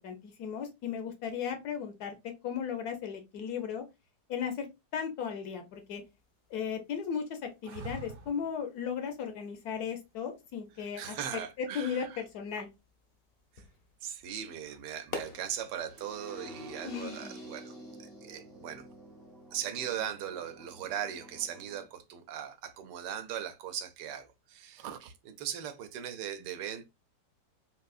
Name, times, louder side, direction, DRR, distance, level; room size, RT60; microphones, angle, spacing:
voice 1, 0.0-3.8 4.3-4.7 4.9-6.0 6.5-12.7 16.8-17.4, left 7 dB, 70° left, 1.1 m, -36 dB
sound 1, 5.7-17.4, left 4 dB, 55° left, 0.6 m, -51 dB
sound 2, 7.6-8.6 11.2-11.8, right 4 dB, 60° right, 1.2 m, -44 dB
voice 2, 11.0-12.2 14.0-18.9 19.5-26.8, right 9 dB, 80° right, 1.2 m, -39 dB
sound 3, 15.9-21.8, equal, 35° right, 0.3 m, -49 dB
3.7 x 2.6 x 2.3 m
omnidirectional pair, 1.9 m